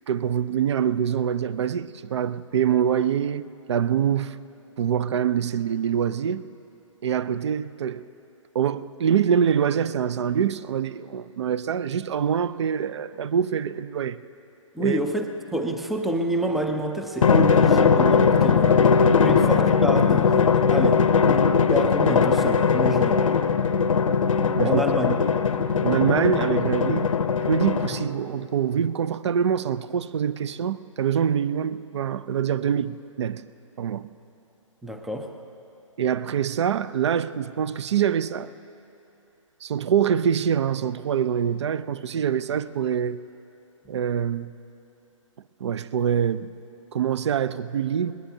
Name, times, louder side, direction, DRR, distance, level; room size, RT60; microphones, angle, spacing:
voice 1, 0.1-4.4 4.8-6.4 7.0-8.0 8.5-14.2 14.8-15.0 17.4-17.5 19.2-19.4 24.6-24.8 25.8-27.1 27.5-33.4 33.8-34.1 36.0-38.5 39.6-43.2 43.9-44.5 45.6-46.5 46.9-48.1, right 8 dB, 55° right, 0.5 m, -25 dB
voice 2, 14.7-15.2 15.5-18.8 19.2-21.4 21.7-23.2 24.6-25.3 34.8-35.4, equal, ahead, 0.4 m, -28 dB
Drum, 17.2-28.2, left 6 dB, 80° left, 0.7 m, -20 dB
21.5 x 19.0 x 2.7 m
hypercardioid pair, 145°, 17 cm